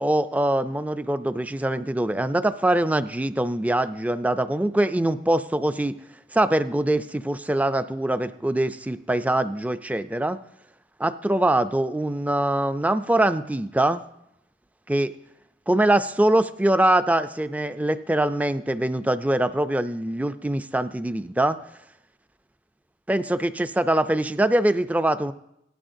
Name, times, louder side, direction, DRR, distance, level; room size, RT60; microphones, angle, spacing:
voice 1, 0.0-5.9 6.3-10.4 11.0-14.0 14.9-15.1 15.7-21.6 23.1-25.3, right 1 dB, 10° right, 12 dB, 0.3 m, -23 dB
17.5 x 12.5 x 2.6 m, 0.81 s
head